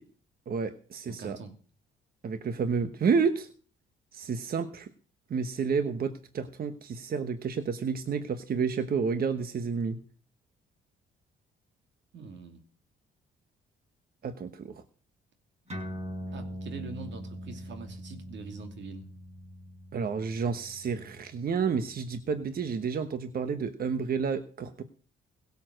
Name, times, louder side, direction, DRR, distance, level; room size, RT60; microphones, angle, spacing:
voice 1, 0.5-1.4 2.2-3.5 4.1-4.9 5.3-10.0 14.2-14.8 19.9-24.8, right 5 dB, 50° right, 10 dB, 1.2 m, -30 dB
voice 2, 1.1-1.5 12.1-12.6 16.3-19.1, right 4 dB, 65° right, 6 dB, 2.8 m, -43 dB
sound 1, 15.7-22.6, equal, 35° right, 5.2 m, -42 dB
17.0 x 7.2 x 6.4 m, 0.41 s
cardioid pair, 90°, 20 cm